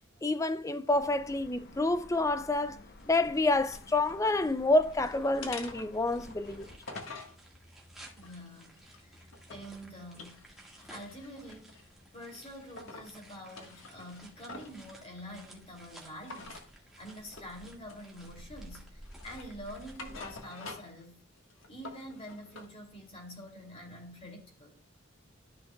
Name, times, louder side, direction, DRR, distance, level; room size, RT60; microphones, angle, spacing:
voice 1, 0.2-2.8 3.1-6.7, left 2 dB, 15° left, 0.4 m, -28 dB
sound 1, 0.9-6.8, left 2 dB, 50° left, 0.9 m, -53 dB
sound 2, 2.6-20.4, right 1 dB, ahead, 1.8 m, -55 dB
sound 3, 3.0-4.2 4.6-5.0 5.4-7.4 7.9-9.7 10.1-11.9 12.3-13.1 13.4-14.8 16.2-16.7 17.3-17.6 17.9-18.6 19.0-21.0 21.4-22.7, left 3 dB, 80° left, 1.6 m, -47 dB
voice 2, 8.2-10.4 10.9-11.8 12.1-21.2 21.7-24.7, equal, 30° left, 2.8 m, -47 dB
13.0 x 5.7 x 2.3 m
head